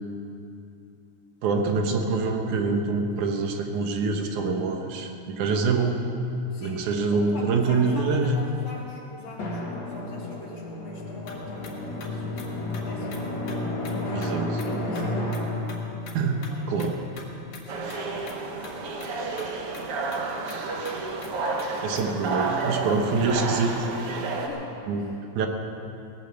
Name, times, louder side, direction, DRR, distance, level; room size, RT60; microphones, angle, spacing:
voice 1, 1.4-6.0 6.6-8.4 14.1-14.5 16.1-16.4 16.7-17.0 21.8-24.2 24.9-25.0 25.3-25.5, right 4 dB, 75° right, 4 dB, 2.6 m, -25 dB
voice 2, 6.5-13.3 14.0-15.7 16.3-16.9 17.4-20.5 24.2-25.2, left 2 dB, 55° left, -3 dB, 3.4 m, -43 dB
Drum, 9.4-17.7, left 1 dB, 40° left, 2.3 m, -32 dB
sound 1, 11.2-14.0 14.2-14.3 14.6-14.7 14.9-15.0 15.3-15.4 15.7-15.8 16.1-16.5 16.8-17.3 17.5-17.6 17.9-18.0 18.2-18.4 18.6-18.7 19.0-19.1 19.4-19.5 19.7-19.8 20.1-20.2 20.5-20.6 20.8-20.9 21.2-21.3 21.6-21.7 22.0-22.1, left 5 dB, 75° left, 3.1 m, -44 dB
sound 2, 17.7-24.5, right 3 dB, 60° right, 1.8 m, -31 dB
18.5 x 9.0 x 7.7 m, 2.8 s
omnidirectional pair, 3.5 m